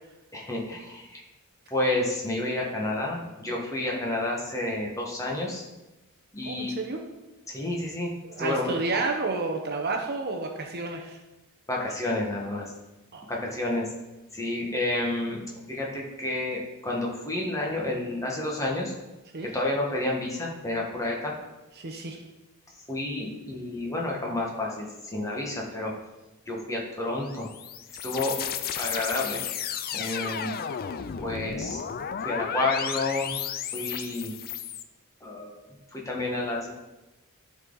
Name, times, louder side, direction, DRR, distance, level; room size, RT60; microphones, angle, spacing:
voice 1, 0.3-1.2 1.7-5.6 6.3-6.7 7.5-8.1 8.4-9.0 11.7-12.7 13.3-13.9 14.3-15.4 15.7-18.9 19.4-21.3 22.9-25.9 26.5-27.5 28.0-28.4 28.7-29.4 29.9-30.5 31.2-31.8 32.2-33.3 33.7-34.3 35.2-35.6 35.9-36.7, left 2 dB, 15° left, -2 dB, 1.4 m, -30 dB
voice 2, 6.4-7.0 8.2-11.2 13.1-13.2 19.3-19.5 21.8-22.2, right 3 dB, 45° right, 3 dB, 0.8 m, -30 dB
sound 1, 27.2-34.8, left 8 dB, 40° left, 0.4 m, -33 dB
12.0 x 4.2 x 3.9 m, 1.0 s
head